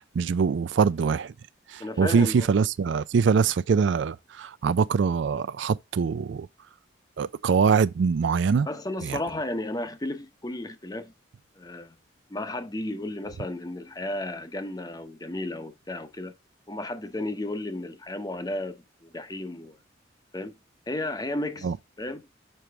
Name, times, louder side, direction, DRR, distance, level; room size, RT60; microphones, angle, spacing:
voice 1, 0.2-1.3 1.7-6.5 7.2-8.7 9.1-9.2 21.6-21.7, right 5 dB, 70° right, 0.4 m, -23 dB
voice 2, 1.8-2.5 8.7-11.1 11.6-12.0 12.3-16.3 16.7-19.8 20.3-20.5 20.9-21.7 22.0-22.3, left 1 dB, 20° left, 0.8 m, -33 dB
6.9 x 4.5 x 3.4 m
head